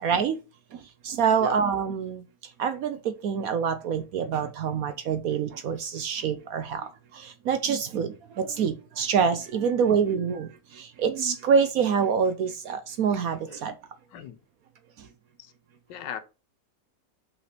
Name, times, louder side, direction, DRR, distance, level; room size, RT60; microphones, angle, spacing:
voice 1, 0.0-0.4 1.0-2.2 2.6-13.7, right 6 dB, 65° right, 1.0 m, -26 dB
voice 2, 1.4-1.7 6.7-6.8 13.5-13.6 14.1-14.4 15.4-15.5 15.9-16.2, left 9 dB, 90° left, 1.5 m, -39 dB
5.7 x 4.2 x 5.8 m
omnidirectional pair, 1.9 m